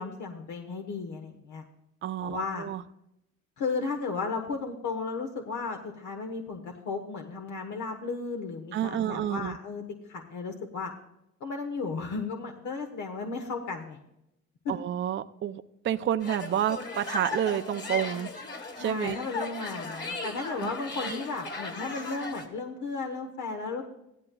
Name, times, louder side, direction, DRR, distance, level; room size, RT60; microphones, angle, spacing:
voice 1, 0.0-1.6 2.2-2.7 3.6-9.8 10.1-10.9 11.4-14.0 18.7-23.8, left 4 dB, 80° left, 4 dB, 1.2 m, -34 dB
voice 2, 2.0-2.8 8.7-9.6 14.7-18.3 18.8-19.2 20.6-20.7, right 10 dB, 40° right, 10 dB, 0.5 m, -29 dB
sound 1, 16.2-22.5, left 3 dB, 35° left, 2.1 m, -37 dB
15.0 x 12.0 x 2.3 m, 0.83 s
cardioid pair, 90°, 30 cm